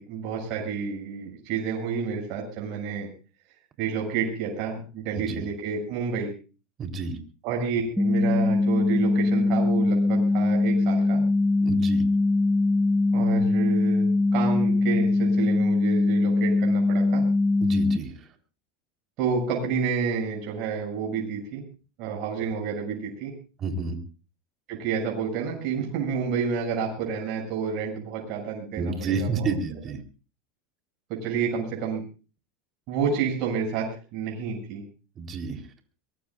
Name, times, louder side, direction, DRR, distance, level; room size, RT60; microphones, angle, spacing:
voice 1, 0.0-3.1 3.8-6.3 7.4-11.2 13.1-17.2 19.2-21.6 22.0-23.3 24.7-29.5 31.1-32.0 32.9-34.8, right 6 dB, 55° right, 0 dB, 7.6 m, -29 dB
voice 2, 6.8-7.2 11.6-12.0 17.6-18.3 23.6-24.0 28.8-30.0 35.2-35.7, right 4 dB, 35° right, 5 dB, 3.9 m, -30 dB
sound 1, 8.0-18.0, left 2 dB, ahead, 1.3 m, -22 dB
23.0 x 20.0 x 2.6 m, 0.35 s
hypercardioid pair, 100°, 0 cm